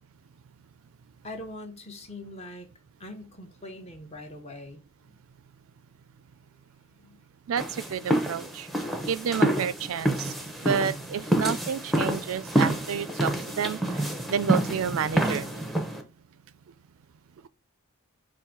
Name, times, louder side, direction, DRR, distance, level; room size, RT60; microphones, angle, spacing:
voice 1, 1.2-2.7 3.0-4.8 7.0-7.2, left 1 dB, 30° left, 0.8 m, -42 dB
voice 2, 7.5-8.7 9.1-10.3 10.6-15.5, right 7 dB, 65° right, 0.4 m, -30 dB
sound 1, 7.6-16.0, right 1 dB, ahead, 0.6 m, -28 dB
5.6 x 2.6 x 3.7 m
head